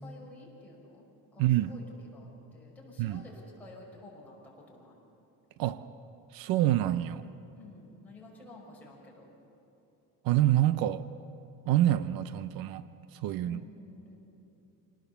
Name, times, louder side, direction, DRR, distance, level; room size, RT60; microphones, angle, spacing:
voice 1, 0.0-1.0 1.3-1.8 2.1-4.4 4.7-5.0 7.5-9.2 13.4-14.2, left 2 dB, 5° left, -5 dB, 5.6 m, -51 dB
voice 2, 1.4-1.8 3.0-3.2 5.6-5.9 6.3-7.2 10.2-11.1 11.7-12.8 13.1-13.6, right 13 dB, 70° right, 13 dB, 0.6 m, -27 dB
26.5 x 19.0 x 6.9 m, 2.9 s
cardioid pair, 170°, 36 cm